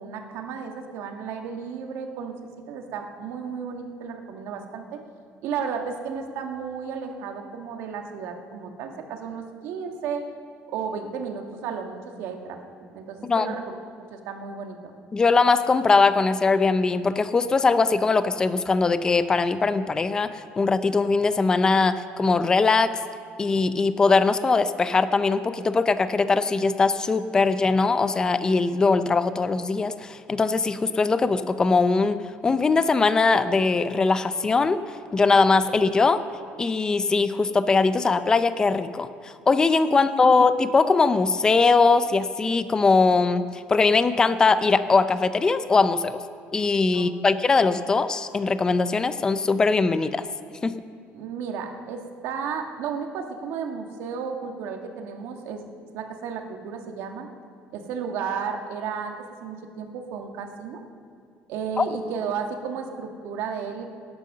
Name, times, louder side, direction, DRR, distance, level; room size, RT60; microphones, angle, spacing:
voice 1, 0.0-2.3 2.7-5.0 5.4-10.2 10.7-14.9 39.9-40.4 46.9-47.3 51.1-55.6 55.9-57.3 57.7-59.1 59.4-60.8 61.5-63.8, right 6 dB, 80° right, 4 dB, 1.6 m, -33 dB
voice 2, 15.1-22.9 23.4-34.8 35.1-36.2 36.6-46.2 46.5-50.2 50.6-50.7 61.8-61.9, left 4 dB, 15° left, 12 dB, 0.5 m, -21 dB
17.5 x 10.5 x 6.6 m, 2.2 s
cardioid pair, 160°, 4 cm